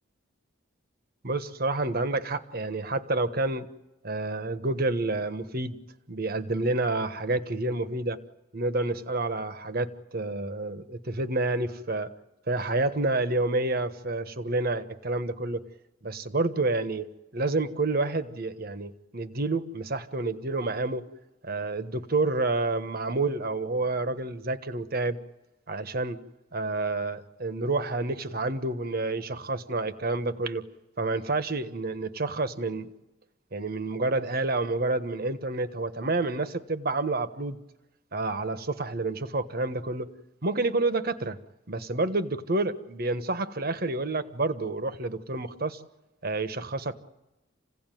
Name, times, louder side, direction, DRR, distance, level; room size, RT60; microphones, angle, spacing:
voice 1, 1.2-3.7 4.0-5.8 6.1-8.2 8.5-12.1 12.5-15.6 16.0-21.0 21.4-25.2 25.7-26.2 26.5-30.7 31.0-32.9 33.5-37.6 38.1-40.1 40.4-41.4 41.7-45.8 46.2-47.0, right 2 dB, 50° right, 10 dB, 1.4 m, -29 dB
28.0 x 17.0 x 9.3 m, 1.0 s
head